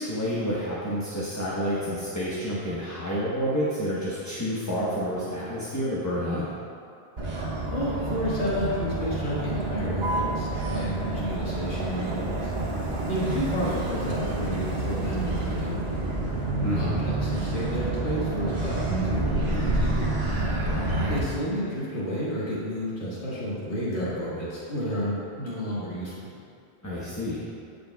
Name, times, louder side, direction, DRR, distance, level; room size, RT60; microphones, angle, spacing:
voice 1, 0.0-6.4 16.6-17.0 20.6-21.0 26.8-27.4, equal, 15° left, -8 dB, 0.9 m, -29 dB
Motor vehicle (road), 7.2-21.2, right 2 dB, 70° right, 1.3 m, -28 dB
voice 2, 7.7-12.5 13.1-15.7 16.8-20.3 21.1-26.3, equal, 90° left, -9 dB, 2.0 m, -31 dB
15.0 x 5.1 x 2.3 m, 2.4 s
omnidirectional pair, 1.1 m